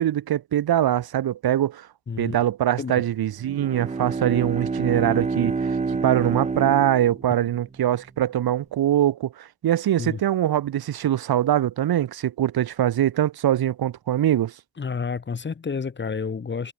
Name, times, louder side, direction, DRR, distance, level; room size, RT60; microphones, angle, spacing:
voice 1, 0.0-1.9 2.2-5.8 6.0-14.5, right 11 dB, 65° right, 2.0 m, -23 dB
Bowed string instrument, 3.4-7.8, right 4 dB, 15° right, 0.9 m, -28 dB
voice 2, 14.8-16.7, left 5 dB, 25° left, 2.6 m, -30 dB
wide cardioid pair, 165°, 40 cm